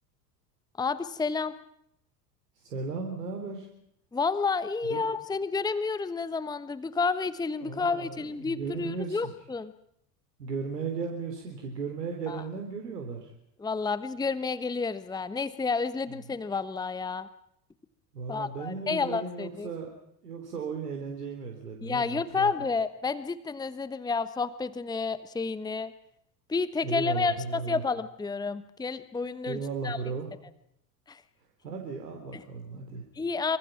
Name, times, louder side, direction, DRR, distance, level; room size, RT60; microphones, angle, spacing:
voice 1, 0.8-1.5 4.1-9.7 12.3-12.4 13.6-17.3 18.3-19.7 21.8-25.9 26.5-30.0 31.1-31.2 32.3-32.4 33.2-33.6, left 4 dB, 10° left, 14 dB, 1.1 m, -30 dB
voice 2, 2.6-3.7 4.9-5.0 7.6-9.2 10.4-13.3 18.1-19.9 20.2-22.5 26.8-27.8 29.5-30.3 31.6-33.0, right 5 dB, 75° right, 3 dB, 4.0 m, -36 dB
27.5 x 25.5 x 5.9 m, 0.76 s
figure-of-eight pair, 75°, 48 cm